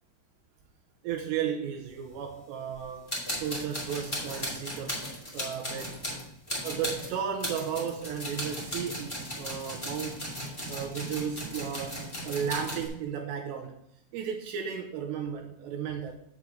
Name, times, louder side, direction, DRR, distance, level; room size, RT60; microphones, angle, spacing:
voice 1, 1.0-3.1 3.4-5.0 5.3-6.2 6.6-10.2 10.7-13.8 14.1-16.2, right 8 dB, 80° right, 3 dB, 2.6 m, -34 dB
sound 1, 2.7-2.8 3.1-12.9, equal, 15° left, 1.0 m, -36 dB
8.3 x 7.2 x 3.8 m, 0.76 s
omnidirectional pair, 5.5 m